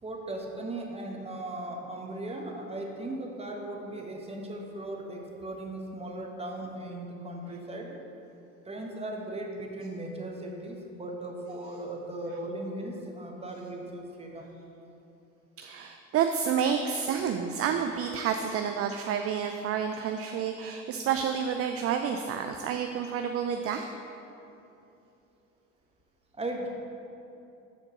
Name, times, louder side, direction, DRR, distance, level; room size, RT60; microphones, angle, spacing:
voice 1, 0.0-8.0 8.6-14.5 17.1-17.2 26.3-26.7, right 1 dB, 15° right, 0 dB, 1.2 m, -37 dB
voice 2, 15.6-23.9, right 7 dB, 40° right, 5 dB, 0.4 m, -29 dB
13.0 x 4.3 x 3.0 m, 2.8 s
hypercardioid pair, 60°, 39 cm